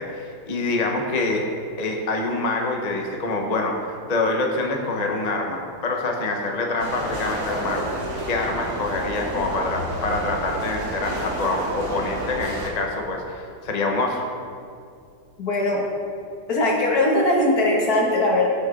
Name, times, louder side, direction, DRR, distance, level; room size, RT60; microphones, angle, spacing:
voice 1, 0.0-1.4 1.8-7.9 8.3-14.2, left 2 dB, 30° left, 1 dB, 1.0 m, -26 dB
sound 1, 6.8-12.7, right 1 dB, 75° right, 2.5 m, -30 dB
voice 2, 15.4-15.9 16.5-18.5, left 1 dB, 65° left, -1 dB, 2.0 m, -20 dB
17.5 x 6.6 x 3.8 m, 2.3 s
omnidirectional pair, 1.7 m